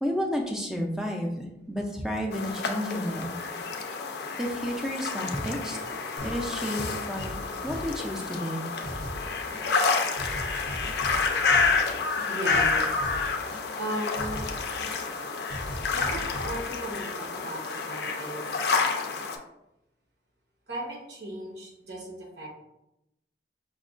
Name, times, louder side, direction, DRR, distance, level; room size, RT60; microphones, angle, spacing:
voice 1, 0.0-3.4 4.4-5.8 6.2-6.8 7.1-8.7, equal, 5° right, 1 dB, 0.4 m, -31 dB
sound 1, 2.3-19.4, left 4 dB, 65° left, 0.4 m, -29 dB
sound 2, 6.2-6.5 6.8-8.5 8.8-9.9 10.2-11.9 12.2-13.9 14.2-15.2 15.5-16.7, equal, 45° right, 0.7 m, -39 dB
voice 2, 12.3-12.9 13.8-14.5 15.9-18.5 20.7-22.5, right 1 dB, 75° right, -1 dB, 1.0 m, -36 dB
5.0 x 2.2 x 2.4 m, 0.88 s
head